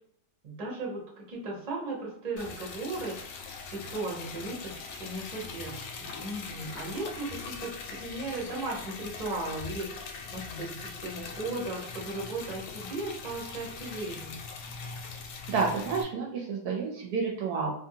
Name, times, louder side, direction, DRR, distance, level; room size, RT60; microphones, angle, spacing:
voice 1, 0.4-3.3 3.7-14.4, right 2 dB, 35° right, -3 dB, 0.7 m, -37 dB
Liquid, 2.4-16.0, left 4 dB, 90° left, 1.2 m, -41 dB
voice 2, 15.5-17.7, right 5 dB, 70° right, -1 dB, 1.0 m, -30 dB
2.6 x 2.6 x 2.7 m, 0.69 s
omnidirectional pair, 1.9 m